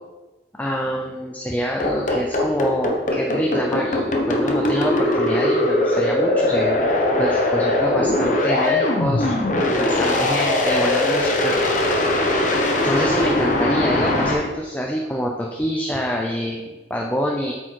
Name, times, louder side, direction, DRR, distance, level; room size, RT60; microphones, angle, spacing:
voice 1, 0.6-11.5 12.8-17.5, equal, 10° left, -1 dB, 0.6 m, -26 dB
sound 1, 1.8-14.3, left 1 dB, 45° left, 0.9 m, -20 dB
8.3 x 4.5 x 4.6 m, 1.2 s
head